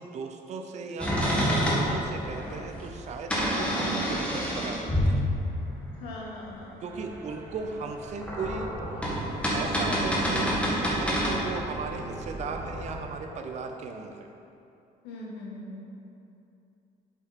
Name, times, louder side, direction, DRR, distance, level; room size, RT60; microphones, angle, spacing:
voice 1, 0.0-5.3 6.8-8.7 9.5-14.3, right 4 dB, 45° right, 4 dB, 0.5 m, -37 dB
sound 1, 1.0-5.9 7.9-13.0, equal, 5° left, 1.5 m, -28 dB
voice 2, 6.0-6.7 15.0-15.9, left 1 dB, 90° left, -4 dB, 1.6 m, -40 dB
sound 2, 6.9-12.7, right 2 dB, 15° right, 0.8 m, -43 dB
7.1 x 5.5 x 4.2 m, 2.7 s
cardioid pair, 110°, 17 cm